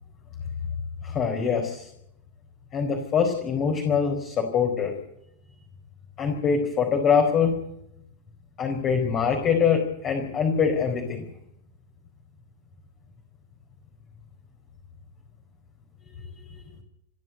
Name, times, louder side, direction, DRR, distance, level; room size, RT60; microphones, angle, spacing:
voice 1, 1.0-1.9 2.7-5.0 6.2-7.6 8.6-11.2 16.1-16.6, left 6 dB, 30° left, 3 dB, 4.5 m, -24 dB
29.0 x 11.5 x 9.4 m, 0.76 s
figure-of-eight pair, 90°, 0 cm